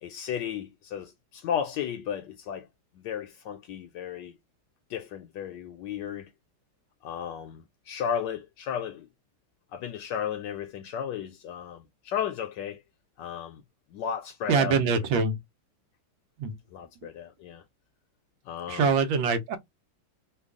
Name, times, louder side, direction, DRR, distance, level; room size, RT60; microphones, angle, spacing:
voice 1, 0.0-2.7 2.9-4.4 4.9-6.3 7.0-9.1 9.7-12.8 13.2-13.6 13.9-15.3 16.7-17.6 18.5-18.9, left 8 dB, 75° left, 1.1 m, -34 dB
voice 2, 14.5-15.4 16.4-16.6 18.7-19.6, right 5 dB, 80° right, 1.5 m, -24 dB
3.4 x 2.3 x 3.5 m
omnidirectional pair, 2.1 m